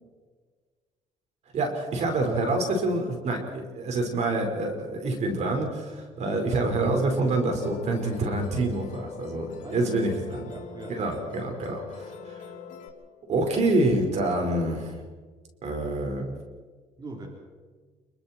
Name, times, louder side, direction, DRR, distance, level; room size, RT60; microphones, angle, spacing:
voice 1, 1.5-10.5 10.9-12.5 13.3-15.0 15.6-16.4, right 2 dB, 55° right, 3 dB, 5.3 m, -27 dB
Musical instrument, 6.5-12.9, left 6 dB, 70° left, 4.4 m, -41 dB
voice 2, 9.6-9.9 10.4-11.8 17.0-17.3, right 2 dB, 30° right, 0 dB, 4.3 m, -42 dB
29.5 x 22.5 x 4.7 m, 1.4 s
cardioid pair, 115°, 14 cm